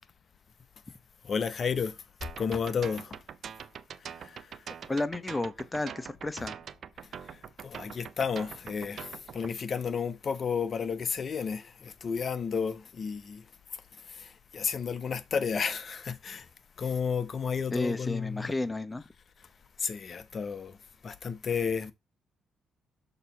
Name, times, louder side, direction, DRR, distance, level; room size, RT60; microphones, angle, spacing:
voice 1, 1.2-3.2 4.0-4.8 6.4-6.5 7.0-16.5 16.8-18.5 19.4-19.5 19.8-21.9, left 6 dB, 50° left, 0.8 m, -33 dB
sound 1, 2.2-9.5, right 8 dB, 60° right, 0.5 m, -43 dB
voice 2, 4.9-6.5 17.7-19.1, left 2 dB, 20° left, 0.9 m, -32 dB
6.6 x 3.0 x 5.8 m
supercardioid pair, 65°, 0 cm